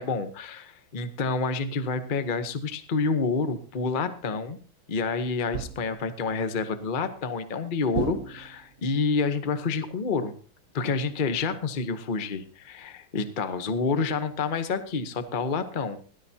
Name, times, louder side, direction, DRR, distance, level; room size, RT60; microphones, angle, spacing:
voice 1, 0.0-4.6 4.9-10.3 10.7-16.0, left 4 dB, 40° left, 9 dB, 0.7 m, -28 dB
sound 1, 5.5-6.1 7.9-8.8, right 8 dB, 80° right, 0.6 m, -33 dB
18.0 x 11.5 x 2.8 m, 0.39 s
omnidirectional pair, 2.3 m